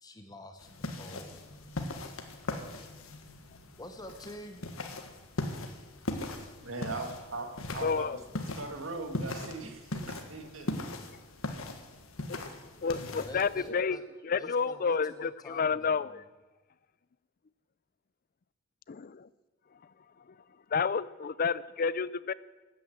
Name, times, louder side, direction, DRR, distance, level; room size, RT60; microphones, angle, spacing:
voice 1, 0.0-1.4 3.8-4.6 13.1-14.0 14.4-16.2, left 1 dB, 20° left, 6 dB, 1.1 m, -47 dB
sound 1, 0.6-13.7, left 2 dB, 80° left, 1.6 m, -39 dB
voice 2, 6.6-8.1 8.6-10.7, right 3 dB, 70° right, 5 dB, 2.0 m, -39 dB
voice 3, 7.8-8.2 12.3-12.4 12.8-16.2 18.9-19.3 20.7-22.3, left 5 dB, 45° left, 18 dB, 0.4 m, -30 dB
13.5 x 9.5 x 8.0 m, 1.2 s
head